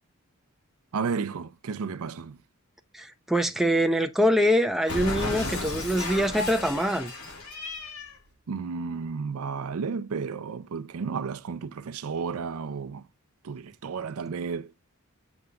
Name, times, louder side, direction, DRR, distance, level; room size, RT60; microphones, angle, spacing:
voice 1, 0.9-2.4 8.5-13.0 13.4-14.7, right 5 dB, 75° right, 0.5 m, -32 dB
voice 2, 2.9-7.1, equal, ahead, 0.6 m, -24 dB
Cat, 4.9-8.2, left 2 dB, 90° left, 3.7 m, -33 dB
7.0 x 3.5 x 3.8 m
head